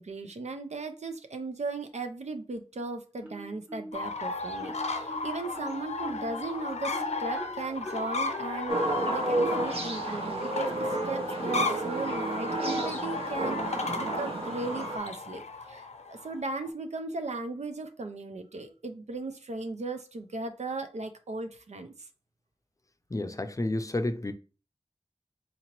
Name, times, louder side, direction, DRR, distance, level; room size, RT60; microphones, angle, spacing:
voice 1, 0.0-22.1, right 3 dB, 85° right, 0.5 m, -37 dB
Marimba xylophone, 3.2-4.1 4.6-10.1, equal, 10° right, 1.5 m, -44 dB
sound 1, 3.9-16.7, left 3 dB, 80° left, 0.5 m, -35 dB
sound 2, 8.7-15.0, right 2 dB, 60° right, 0.8 m, -31 dB
voice 2, 23.1-24.3, left 2 dB, 30° left, 0.5 m, -30 dB
3.9 x 2.9 x 2.9 m
wide cardioid pair, 45°, 11 cm